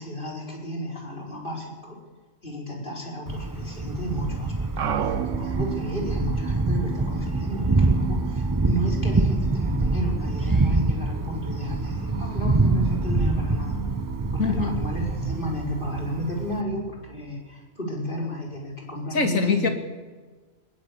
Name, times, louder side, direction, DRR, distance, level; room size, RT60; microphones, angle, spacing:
voice 1, 0.0-2.0 2.4-13.8 14.3-16.8 17.1-19.7, equal, 40° left, -1 dB, 4.9 m, -32 dB
Thunder, 3.3-16.6, right 2 dB, 20° right, 0.7 m, -25 dB
sound 1, 4.8-17.6, right 8 dB, 70° right, 1.4 m, -35 dB
voice 2, 14.4-14.8 19.1-19.7, left 5 dB, 80° left, 5 dB, 3.0 m, -23 dB
21.0 x 21.0 x 8.3 m, 1.3 s
omnidirectional pair, 1.4 m